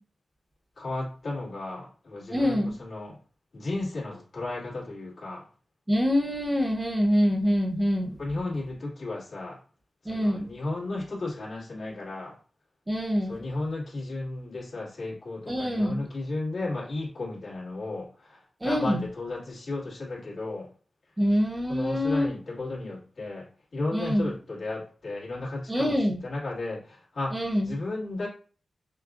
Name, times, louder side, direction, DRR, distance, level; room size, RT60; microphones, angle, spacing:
voice 1, 0.8-3.2 3.5-5.5 8.2-9.6 10.0-12.4 13.2-20.7 21.3-21.4 21.7-28.3, left 2 dB, 70° left, 1.9 m, -34 dB
voice 2, 2.3-2.7 5.9-8.1 10.1-10.5 12.9-13.4 15.5-16.0 18.6-19.0 21.2-22.3 23.9-24.3 25.7-26.2 27.3-27.7, equal, 20° right, 0.6 m, -25 dB
5.7 x 2.4 x 2.5 m
wide cardioid pair, 95°, 0 cm